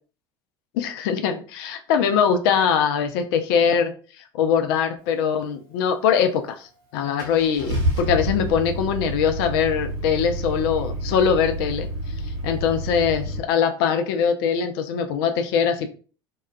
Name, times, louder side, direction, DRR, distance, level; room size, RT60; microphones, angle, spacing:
voice 1, 0.7-11.9 12.4-15.9, left 7 dB, 65° left, 7 dB, 0.4 m, -22 dB
Car / Engine starting, 6.5-6.6 7.2-13.4, equal, 70° right, 1.2 m, -28 dB
2.7 x 2.3 x 2.3 m, 0.39 s
hypercardioid pair, 70°, 13 cm